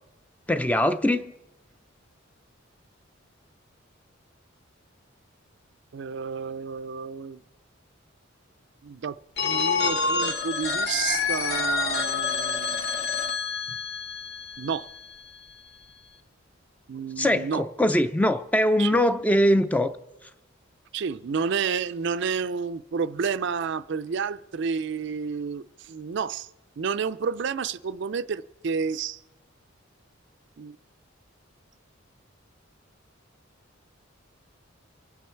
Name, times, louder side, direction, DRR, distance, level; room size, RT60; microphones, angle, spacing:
voice 1, 0.5-1.3 17.2-19.9, left 1 dB, 5° left, 0.4 m, -22 dB
voice 2, 5.9-7.4 8.8-9.2 9.4-12.8 14.6-14.9 16.9-17.9 18.8-19.0 20.9-26.5 26.8-29.2 30.6-30.8, right 6 dB, 60° right, 0.4 m, -30 dB
Telephone, 9.4-15.1, left 4 dB, 55° left, 1.5 m, -27 dB
25.0 x 9.5 x 4.5 m
head